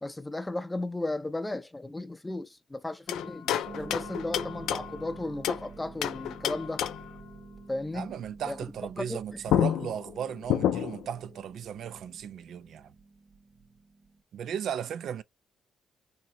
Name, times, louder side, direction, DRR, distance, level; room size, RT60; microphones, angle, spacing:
voice 1, 0.0-3.5 3.8-6.8 7.7-8.1 8.4-8.6 9.0-9.4, left 2 dB, 15° left, 0.5 m, -35 dB
sound 1, 3.1-5.7 6.0-7.2 9.1-9.2 9.5-11.1, left 10 dB, 85° left, 0.4 m, -30 dB
Harp, 3.6-14.2, right 4 dB, 50° right, 0.8 m, -48 dB
voice 2, 7.9-12.9 14.3-15.2, right 9 dB, 70° right, 0.3 m, -36 dB
3.1 x 2.7 x 2.9 m
cardioid pair, 90°, 0 cm